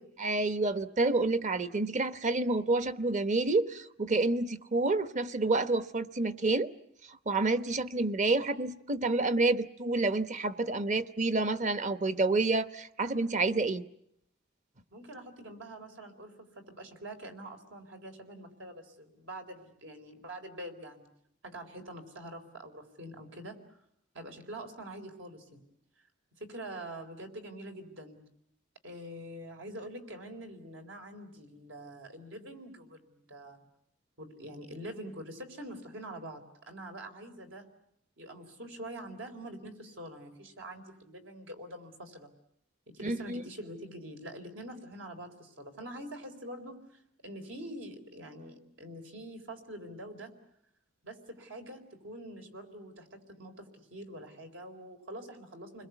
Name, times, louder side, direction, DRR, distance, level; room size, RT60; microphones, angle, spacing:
voice 1, 0.2-6.7 7.1-13.8 43.0-43.4, right 3 dB, 40° right, 12 dB, 1.0 m, -29 dB
voice 2, 14.9-21.1 21.4-23.6 24.1-25.6 26.4-28.2 28.8-33.6 34.2-37.7 38.2-42.3 42.9-50.3 51.0-55.9, right 1 dB, 80° right, 5 dB, 4.2 m, -45 dB
29.5 x 21.5 x 8.2 m, 0.74 s
head